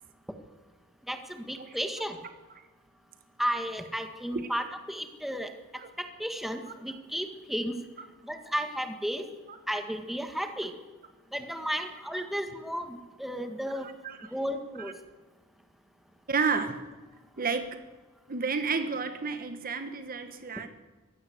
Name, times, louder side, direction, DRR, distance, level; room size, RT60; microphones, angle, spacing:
voice 1, 1.1-2.2 3.4-5.5 6.0-7.8 8.2-9.2 9.7-10.7 11.3-13.9 14.3-14.9, equal, ahead, 6 dB, 1.6 m, -33 dB
voice 2, 16.3-16.8 17.4-17.8 18.3-20.7, right 5 dB, 40° right, 9 dB, 1.2 m, -31 dB
23.0 x 16.0 x 7.9 m, 1.2 s
head